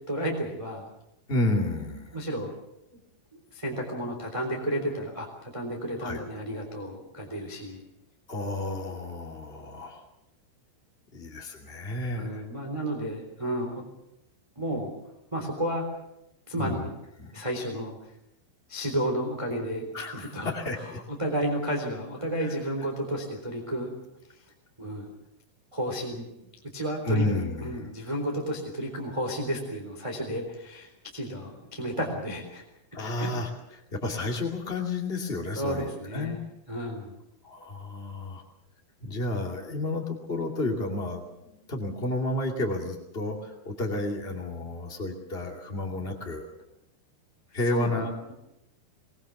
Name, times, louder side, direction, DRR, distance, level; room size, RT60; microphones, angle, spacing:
voice 1, 0.1-0.8 2.1-2.5 3.5-7.8 12.1-13.8 14.5-14.9 15.3-15.9 16.5-16.9 17.3-18.0 18.7-19.9 20.1-20.5 21.1-24.0 24.8-25.1 25.7-27.2 27.6-32.6 33.2-33.3 35.5-36.4 36.7-37.1 47.7-47.9, equal, 10° right, 1 dB, 2.5 m, -32 dB
voice 2, 1.3-2.2 6.0-6.2 8.3-10.0 11.1-12.4 16.6-16.9 17.2-17.4 19.9-21.0 22.4-22.5 27.0-27.9 32.9-36.3 37.4-38.4 39.0-46.5 47.5-48.2, left 2 dB, 45° left, 0 dB, 0.7 m, -31 dB
22.0 x 20.5 x 7.1 m, 0.86 s
omnidirectional pair, 5.9 m